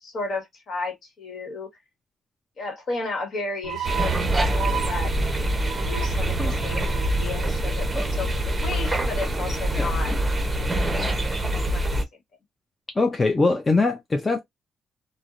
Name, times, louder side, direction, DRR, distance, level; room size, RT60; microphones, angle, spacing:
voice 1, 0.0-1.7 2.6-4.1 4.4-5.1 5.6-10.1 11.4-11.9, left 3 dB, 55° left, 1.2 m, -33 dB
sound 1, 3.6-8.9, right 10 dB, 65° right, 0.4 m, -33 dB
sound 2, 3.8-12.0, right 1 dB, 20° right, 0.6 m, -25 dB
voice 2, 13.0-14.4, left 3 dB, 25° left, 0.5 m, -22 dB
2.6 x 2.0 x 2.4 m
cardioid pair, 90°, 0 cm